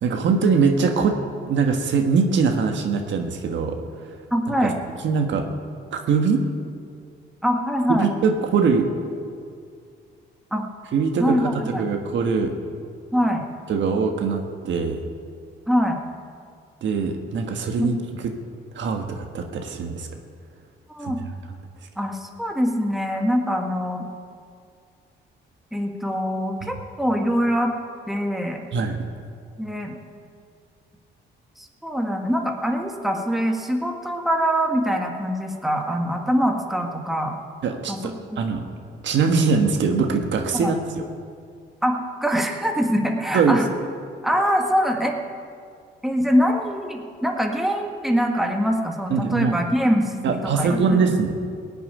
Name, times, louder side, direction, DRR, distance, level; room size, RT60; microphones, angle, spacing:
voice 1, 0.0-1.2 1.4-3.8 4.6-4.7 5.0-5.4 5.9-6.4 7.9-8.9 10.9-12.5 13.7-15.0 16.8-17.9 18.7-20.1 21.0-21.1 26.6-26.7 28.7-29.0 37.6-38.6 39.0-40.8 43.3-43.6 49.1-49.5 50.2-51.3, right 5 dB, 70° right, 5 dB, 1.5 m, -22 dB
voice 2, 4.3-4.8 7.4-8.1 10.5-10.7 11.2-11.9 13.1-13.5 15.7-16.0 17.8-18.0 20.9-21.2 22.0-24.1 25.7-27.7 28.1-28.6 29.6-30.0 31.6-37.4 37.9-38.5 40.5-40.7 41.8-43.7 44.2-45.1 46.0-51.2, equal, ahead, 2 dB, 1.8 m, -23 dB
17.0 x 6.9 x 9.7 m, 2.3 s
cardioid pair, 90°, 20 cm